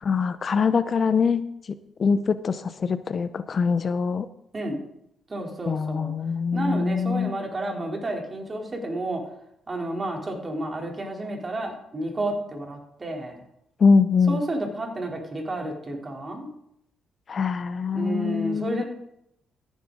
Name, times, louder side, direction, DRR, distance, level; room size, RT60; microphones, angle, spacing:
voice 1, 0.0-1.4 2.0-4.3 5.7-7.3 13.8-14.4 17.3-18.8, left 5 dB, 45° left, 13 dB, 0.6 m, -23 dB
voice 2, 4.5-4.8 5.3-6.1 6.5-9.2 9.7-13.4 14.3-16.5 17.9-18.8, right 1 dB, 30° right, 1 dB, 3.2 m, -31 dB
14.5 x 10.0 x 3.8 m, 0.78 s
cardioid pair, 90°, 0 cm